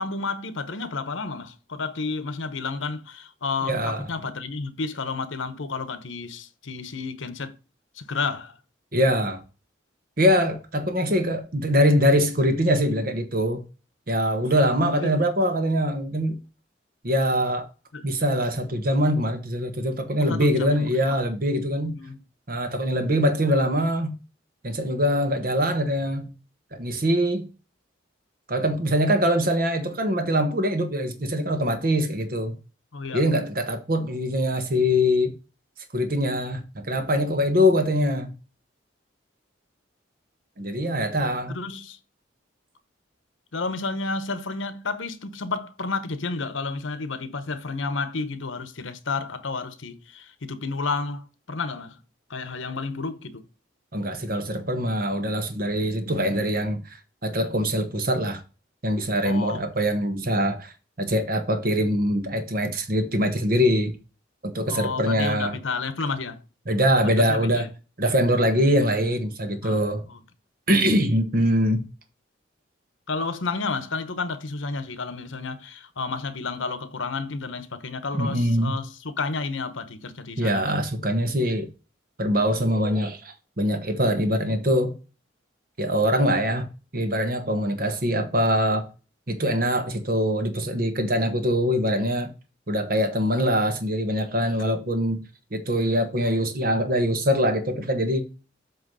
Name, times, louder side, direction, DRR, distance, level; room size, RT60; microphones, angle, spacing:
voice 1, 0.0-7.5 7.9-8.6 14.9-15.2 17.9-18.0 20.2-21.3 21.9-22.2 32.9-33.3 41.5-42.0 43.5-52.0 52.3-53.5 59.2-59.6 64.7-66.4 67.2-67.7 69.6-69.8 70.1-70.2 73.1-80.7, left 4 dB, 80° left, 1.0 m, -31 dB
voice 2, 3.6-4.1 8.9-9.4 10.2-13.6 14.1-16.3 17.0-17.7 18.0-22.0 22.5-24.1 24.6-26.3 26.7-27.5 28.5-32.5 33.1-35.3 35.9-38.3 40.6-41.6 53.9-57.0 57.2-58.4 58.8-63.9 64.4-65.6 66.7-67.7 68.0-70.0 70.7-71.8 78.1-78.7 80.4-81.7 82.2-84.9 85.8-86.7 86.9-88.9 89.3-92.3 92.7-95.3 95.5-98.2, equal, 45° right, 1.2 m, -23 dB
7.9 x 3.1 x 5.5 m
head